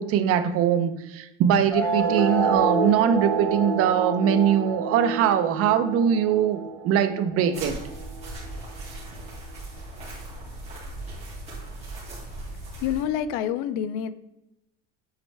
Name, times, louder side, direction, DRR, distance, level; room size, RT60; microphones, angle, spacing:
voice 1, 0.0-6.6 6.8-7.8, right 9 dB, 45° right, 9 dB, 0.6 m, -22 dB
sound 1, 1.7-8.7, right 3 dB, 5° left, 2.7 m, -28 dB
sound 2, 7.5-13.0, right 2 dB, 20° right, 2.7 m, -38 dB
voice 2, 12.8-14.1, left 9 dB, 60° left, 13 dB, 0.6 m, -27 dB
9.0 x 4.5 x 3.3 m, 0.92 s
cardioid pair, 160°, 34 cm